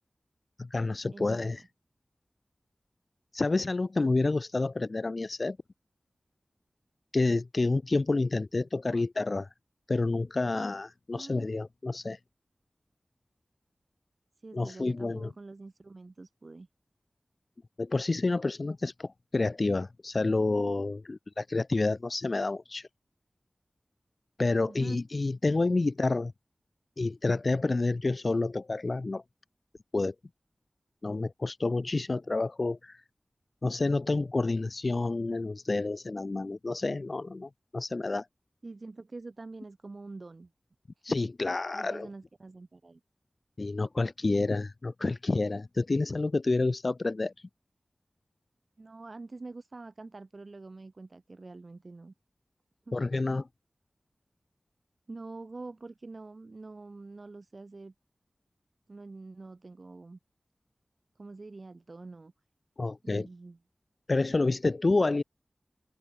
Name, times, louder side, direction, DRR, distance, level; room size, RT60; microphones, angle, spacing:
voice 1, 0.6-1.6 3.3-5.6 7.1-9.5 9.9-12.2 14.5-15.3 17.8-22.9 24.4-26.3 27.0-29.2 29.9-30.1 31.0-33.0 33.6-38.3 41.0-42.1 43.6-47.3 52.9-53.5 62.8-63.3 64.1-65.2, left 3 dB, 55° left, 0.5 m, -29 dB
voice 2, 1.1-1.6 8.9-9.1 11.2-11.5 14.4-16.7 24.6-25.0 38.6-40.5 41.0-41.2 41.7-43.0 48.8-52.1 52.9-53.0 55.1-57.9 58.9-60.2 61.2-62.3 63.0-63.6, right 3 dB, 55° right, 2.2 m, -45 dB
open air
wide cardioid pair, 55°, 0 cm